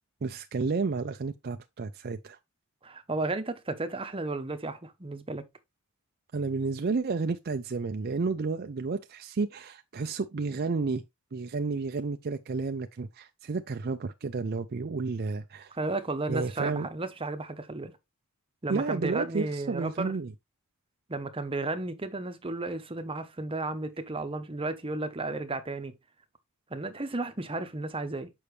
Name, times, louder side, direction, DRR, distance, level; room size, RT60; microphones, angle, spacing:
voice 1, 0.2-2.4 6.3-11.0 11.3-15.7 16.3-16.9 18.7-20.3, right 4 dB, 45° right, 0.5 m, -31 dB
voice 2, 2.8-5.4 15.7-17.9 18.6-20.1 21.1-25.9 26.7-28.3, right 2 dB, 25° right, 0.8 m, -33 dB
6.8 x 5.6 x 3.2 m
head